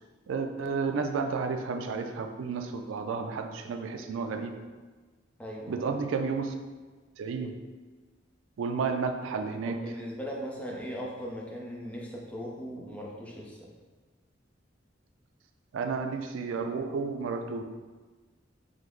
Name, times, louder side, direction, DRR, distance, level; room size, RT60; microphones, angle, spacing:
voice 1, 0.3-4.6 5.7-6.5 7.2-7.6 8.6-9.8 15.7-17.6, right 4 dB, 80° right, 6 dB, 0.3 m, -32 dB
voice 2, 5.4-5.8 9.7-13.6, equal, 5° left, -3 dB, 0.6 m, -39 dB
5.0 x 2.0 x 3.7 m, 1.4 s
head